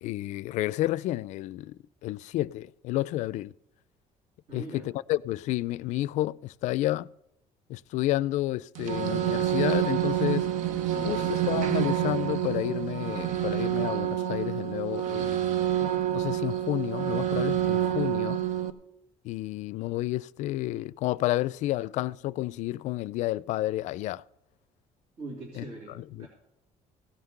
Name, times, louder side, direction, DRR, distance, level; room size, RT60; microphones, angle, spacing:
voice 1, 0.0-3.5 4.5-7.1 7.7-10.5 11.0-15.5 16.1-18.4 19.2-24.2 25.6-25.7 25.9-26.3, left 16 dB, 70° left, 0.4 m, -30 dB
voice 2, 4.5-4.9 10.9-11.6 25.2-26.3, right 2 dB, 55° right, 3.2 m, -42 dB
sound 1, 8.7-18.7, right 11 dB, 75° right, 1.0 m, -28 dB
16.5 x 5.9 x 7.9 m
cardioid pair, 165°, 13 cm